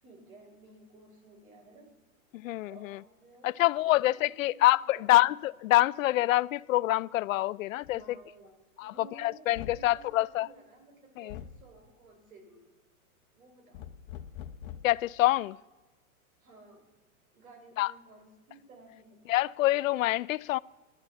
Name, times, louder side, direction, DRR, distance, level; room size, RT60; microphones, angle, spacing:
voice 1, 0.0-1.9 2.7-5.3 7.9-12.6 13.3-13.9 16.4-16.8 17.3-19.2, right 2 dB, 80° right, 4.2 m, -54 dB
voice 2, 2.3-3.0 3.4-8.0 8.8-10.5 11.2-11.4 14.8-15.6 17.8-17.9 19.3-20.6, left 16 dB, 70° left, 0.5 m, -26 dB
sound 1, 7.8-8.0 9.5-9.9 11.3-11.6 13.7-15.0, left 9 dB, 40° left, 0.9 m, -43 dB
13.5 x 12.0 x 6.9 m
hypercardioid pair, 145°, 42 cm